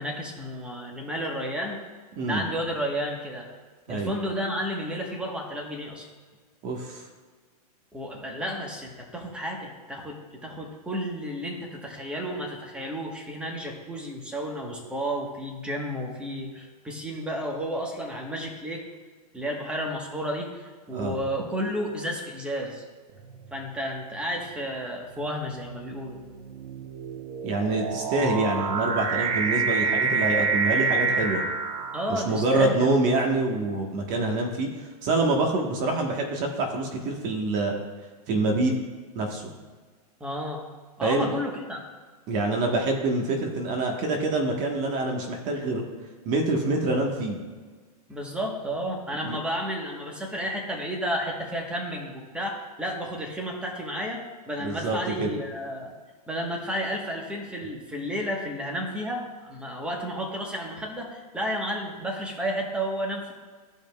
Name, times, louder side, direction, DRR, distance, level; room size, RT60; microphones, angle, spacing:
voice 1, 0.0-1.8 2.2-3.5 3.9-6.1 7.9-18.8 19.3-22.8 23.5-26.2 31.9-33.0 40.2-40.6 41.0-41.8 48.1-55.9 56.3-63.3, equal, 5° right, 0 dB, 1.2 m, -32 dB
voice 2, 6.6-7.0 20.9-21.2 27.4-31.4 32.1-34.7 35.0-37.7 38.3-38.7 39.1-39.4 41.0-41.3 42.3-45.8 46.2-47.4 49.2-49.4 54.6-55.3, right 2 dB, 40° right, 1 dB, 1.3 m, -26 dB
sound 1, 23.2-23.6 24.4-32.6, right 5 dB, 70° right, 1.1 m, -28 dB
14.0 x 5.3 x 2.3 m, 1.5 s
supercardioid pair, 145°, 20 cm